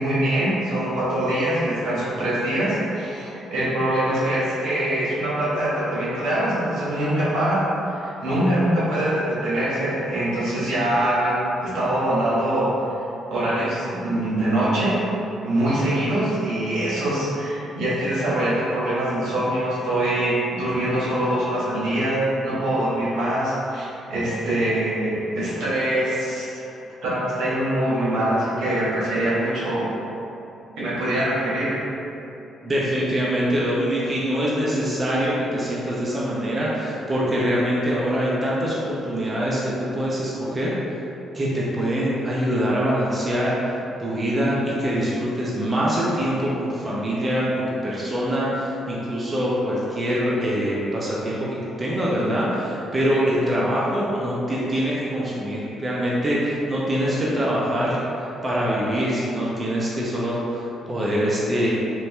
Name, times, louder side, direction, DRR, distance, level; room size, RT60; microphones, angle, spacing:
voice 1, 0.0-7.7 8.0-12.7 13.3-15.0 15.4-26.6 27.0-29.9 30.8-31.7, right 1 dB, 80° right, -9 dB, 1.4 m, -23 dB
voice 2, 32.6-40.7 41.3-61.7, equal, 30° right, -6 dB, 0.8 m, -24 dB
4.6 x 2.7 x 3.4 m, 2.9 s
cardioid pair, 90°, 0 cm